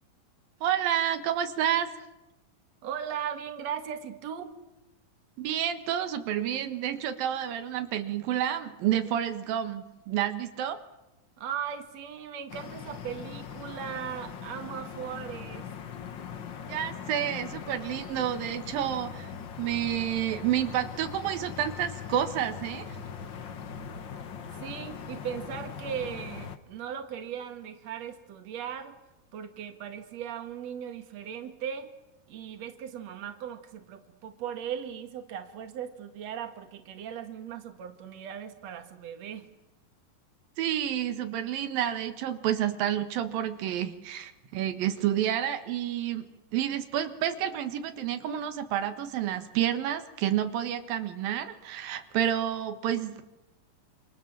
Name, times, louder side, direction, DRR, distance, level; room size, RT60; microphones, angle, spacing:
voice 1, 0.6-1.9 5.4-10.8 16.7-19.3 19.6-23.0 40.6-53.2, right 10 dB, 90° right, 8 dB, 3.2 m, -29 dB
voice 2, 2.8-4.6 11.4-15.7 24.5-29.0 29.3-31.9 32.3-39.5, right 8 dB, 55° right, 7 dB, 3.0 m, -38 dB
sound 1, 12.5-26.6, left 7 dB, 55° left, 1.3 m, -41 dB
28.5 x 27.0 x 7.4 m, 0.98 s
omnidirectional pair, 4.0 m